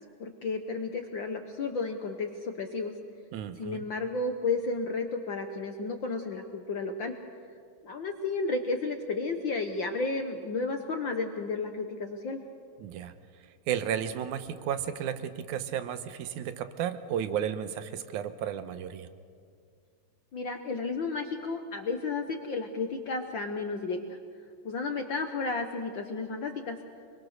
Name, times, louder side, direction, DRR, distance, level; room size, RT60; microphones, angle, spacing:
voice 1, 0.2-2.9 3.6-7.1 7.8-12.4 20.3-24.2 24.6-26.8, left 3 dB, 65° left, 5 dB, 1.2 m, -32 dB
voice 2, 3.3-3.9 12.8-13.1 13.7-19.1, right 9 dB, 75° right, 10 dB, 2.4 m, -33 dB
25.5 x 22.5 x 6.6 m, 2.1 s
omnidirectional pair, 3.6 m